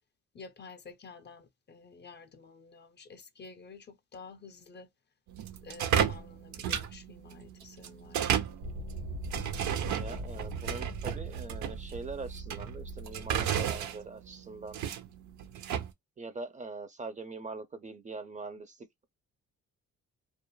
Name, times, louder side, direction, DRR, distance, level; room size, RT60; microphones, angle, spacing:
voice 1, 0.3-4.9 5.6-8.5, left 4 dB, 35° left, 0.5 m, -50 dB
sound 1, 5.3-15.9, right 9 dB, 70° right, 0.6 m, -33 dB
sound 2, 8.6-13.8, right 2 dB, 90° right, 1.1 m, -41 dB
voice 2, 9.9-14.8 16.2-19.1, right 3 dB, 25° right, 0.4 m, -42 dB
2.3 x 2.1 x 3.0 m
cardioid pair, 90°, 30 cm